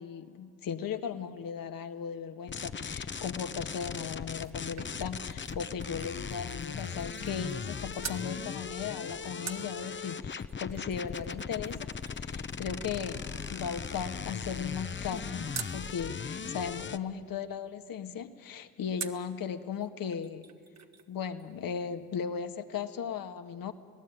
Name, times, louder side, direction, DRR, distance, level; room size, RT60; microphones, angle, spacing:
voice 1, 0.0-20.5 21.1-23.7, left 7 dB, 65° left, 8 dB, 1.7 m, -37 dB
sound 1, 2.5-17.0, left 6 dB, 30° left, 0.9 m, -38 dB
sound 2, 4.1-7.7 8.0-8.3 9.5-15.8 19.0-19.3 19.8-19.9 20.1-21.1 21.4-21.5, right 7 dB, 45° right, 1.7 m, -46 dB
27.0 x 17.5 x 9.3 m, 2.3 s
supercardioid pair, 70°, 38 cm